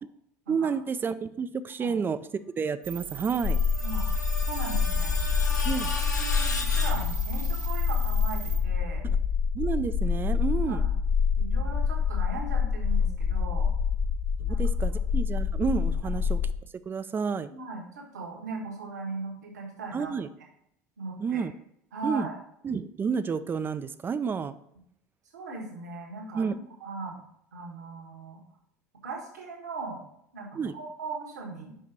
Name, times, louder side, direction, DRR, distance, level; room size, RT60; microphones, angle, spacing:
voice 1, 0.5-2.2 2.6-3.6 5.6-5.9 9.0-9.2 9.5-10.8 14.4-16.4 16.9-17.5 19.9-20.3 21.2-21.5 22.0-22.3 22.6-24.5 26.3-26.6 30.5-30.7, right 6 dB, 25° right, 13 dB, 0.5 m, -30 dB
sound 1, 2.8-8.6, right 10 dB, 50° right, 1.1 m, -39 dB
Screech, 3.4-7.7, left 3 dB, 85° left, 0.9 m, -36 dB
sound 2, 3.4-16.5, left 6 dB, 45° left, 1.2 m, -26 dB
voice 2, 4.5-5.1 5.7-5.8 6.2-9.1 10.6-10.9 11.4-13.7 14.5-14.6 17.5-20.1 21.0-21.5 21.9-22.3 25.3-26.5 26.8-27.2 27.5-28.4 29.0-30.0 30.3-31.8, right 3 dB, 75° right, -1 dB, 1.6 m, -38 dB
5.6 x 5.4 x 5.2 m, 0.72 s
figure-of-eight pair, 75°, 9 cm